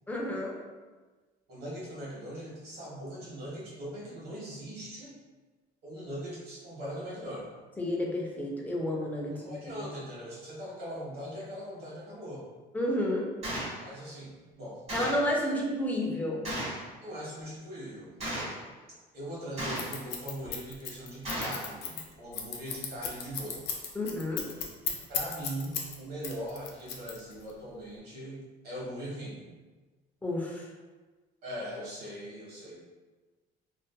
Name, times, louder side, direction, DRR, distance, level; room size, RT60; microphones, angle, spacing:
voice 1, 0.1-0.5 7.8-9.9 12.7-13.3 14.9-16.5 23.9-24.4 30.2-30.7, left 1 dB, 10° left, -2 dB, 0.5 m, -31 dB
voice 2, 1.5-5.1 5.8-7.5 9.3-12.5 13.7-14.8 15.4-15.6 17.0-18.1 19.1-23.6 25.1-29.4 31.4-32.8, equal, 70° right, -6 dB, 1.1 m, -40 dB
Gunshot gunfire, 13.4-13.8 14.9-15.3 16.4-16.8 18.2-18.6 19.6-20.0 21.2-21.6, right 1 dB, 40° right, 1.3 m, -34 dB
Scissors, 19.8-25.9 26.2-27.5, left 8 dB, 75° left, 0.4 m, -35 dB
2.5 x 2.4 x 2.2 m, 1.3 s
cardioid pair, 110°, 17 cm